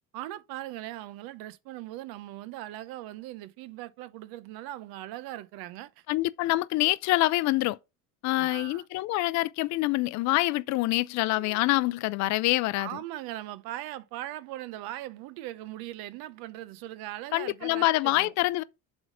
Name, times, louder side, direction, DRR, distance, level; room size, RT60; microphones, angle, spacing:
voice 1, 0.1-6.0 8.4-8.8 11.3-11.6 12.8-18.3, right 15 dB, 80° right, 0.8 m, -40 dB
voice 2, 6.1-7.8 8.2-13.0 17.3-18.6, left 18 dB, 50° left, 0.4 m, -26 dB
7.7 x 3.6 x 6.2 m
cardioid pair, 175°, 36 cm